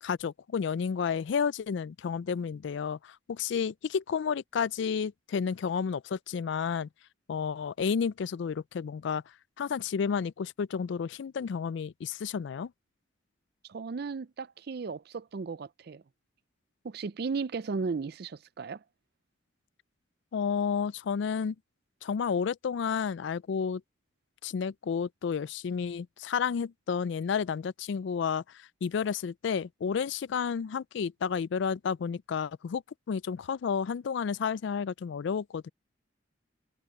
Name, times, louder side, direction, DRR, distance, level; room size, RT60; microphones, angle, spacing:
voice 1, 0.0-6.9 7.3-9.2 9.6-12.7 20.3-21.6 22.0-23.8 24.4-32.8 33.1-35.7, left 6 dB, 60° left, 0.3 m, -31 dB
voice 2, 13.7-16.0 16.8-18.8, right 4 dB, 50° right, 0.4 m, -35 dB
head